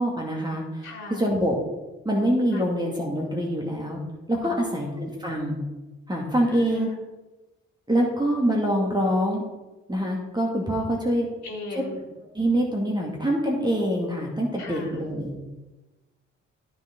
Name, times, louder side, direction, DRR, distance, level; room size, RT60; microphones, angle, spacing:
voice 1, 0.0-1.6 2.1-4.0 4.3-5.6 6.1-6.9 7.9-9.4 9.9-11.3 11.7-11.8 12.3-15.3, equal, 10° right, -1 dB, 2.2 m, -25 dB
voice 2, 0.8-1.2 2.5-2.6 4.4-4.8 6.5-6.9 11.4-12.0 14.6-15.0, left 3 dB, 50° left, -2 dB, 2.2 m, -38 dB
14.0 x 4.8 x 3.8 m, 1.1 s
figure-of-eight pair, 40°, 35 cm